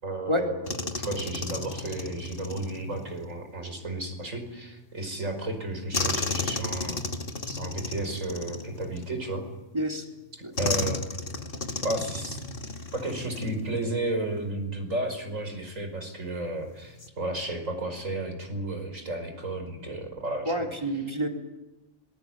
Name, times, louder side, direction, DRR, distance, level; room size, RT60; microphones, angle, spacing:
voice 1, 0.0-7.0 7.5-9.4 10.6-11.0 11.8-12.4 12.9-20.5, right 2 dB, 65° right, 6 dB, 5.7 m, -33 dB
sound 1, 0.7-3.4 5.9-9.4 10.6-13.9 14.2-14.4 16.8-17.1, left 3 dB, 40° left, 1.9 m, -33 dB
voice 2, 9.7-10.0 10.4-10.5 20.5-21.3, equal, 20° right, 1 dB, 4.0 m, -28 dB
26.5 x 22.0 x 9.2 m, 1.0 s
omnidirectional pair, 1.5 m